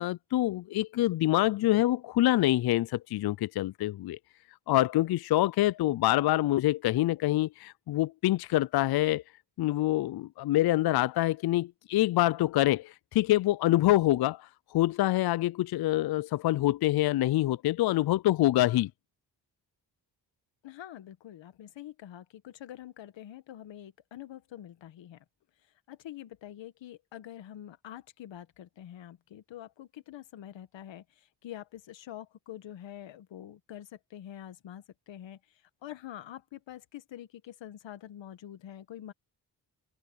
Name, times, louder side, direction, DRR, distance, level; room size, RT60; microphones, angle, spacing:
voice 1, 0.0-4.2 4.7-9.2 9.6-18.9, left 15 dB, 60° left, 0.5 m, -26 dB
voice 2, 20.6-25.2 25.9-39.1, left 11 dB, 80° left, 1.6 m, -46 dB
open air
cardioid pair, 60°, 44 cm